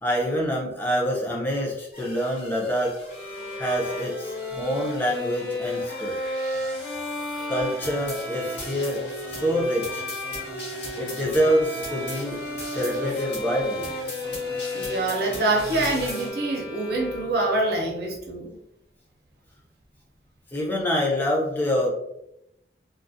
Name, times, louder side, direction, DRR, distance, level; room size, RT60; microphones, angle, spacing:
voice 1, 0.0-3.0 3.6-6.1 7.5-10.1 11.0-12.4 12.7-13.9 20.5-21.9, equal, 10° left, -3 dB, 0.5 m, -26 dB
sound 1, 1.9-16.3, left 1 dB, 90° left, 1.2 m, -39 dB
Bowed string instrument, 3.1-17.6, left 1 dB, 55° left, 0.9 m, -34 dB
voice 2, 14.7-18.6, right 2 dB, 60° right, -1 dB, 0.6 m, -25 dB
2.3 x 2.1 x 2.6 m, 0.83 s
head